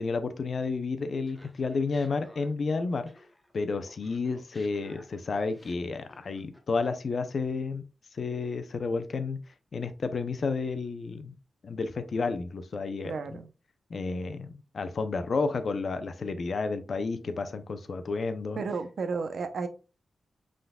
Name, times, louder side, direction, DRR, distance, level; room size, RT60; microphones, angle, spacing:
voice 1, 0.0-3.1 3.5-7.8 8.1-9.4 9.7-11.3 11.6-13.4 13.9-18.6, left 4 dB, 55° left, 0.6 m, -31 dB
Laughter, 1.3-3.5 3.8-7.0, left 1 dB, 5° left, 1.0 m, -57 dB
voice 2, 13.0-13.5 18.6-19.7, right 4 dB, 70° right, 0.7 m, -32 dB
5.6 x 3.9 x 2.3 m
wide cardioid pair, 110°, 0 cm